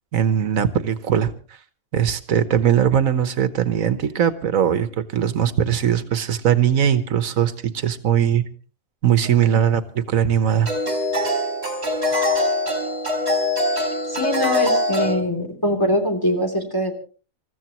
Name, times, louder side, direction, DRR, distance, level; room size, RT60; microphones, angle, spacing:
voice 1, 0.1-1.3 1.9-8.4 9.0-10.7, right 9 dB, 85° right, 12 dB, 1.5 m, -20 dB
sound 1, 9.3-9.4 10.6-15.2, left 1 dB, 50° right, 4.5 m, -23 dB
voice 2, 13.7-16.9, equal, 15° left, 3 dB, 3.3 m, -23 dB
28.0 x 14.5 x 3.1 m, 0.37 s
omnidirectional pair, 1.4 m